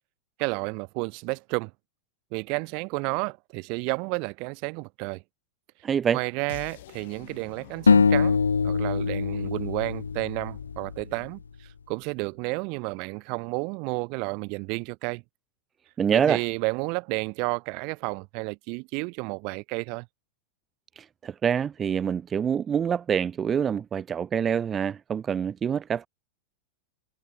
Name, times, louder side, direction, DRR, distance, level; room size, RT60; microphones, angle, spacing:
voice 1, 0.4-1.7 2.3-5.2 6.1-8.4 8.6-15.2 16.1-20.1, right 33 dB, 45° right, 0.9 m, -31 dB
voice 2, 5.8-6.2 16.0-16.4 21.0-26.1, right 8 dB, 20° right, 0.6 m, -26 dB
sound 1, 6.5-12.5, left 16 dB, 55° left, 7.4 m, -48 dB
sound 2, 7.9-11.1, left 5 dB, 75° left, 0.9 m, -23 dB
figure-of-eight pair, 90°, 0 cm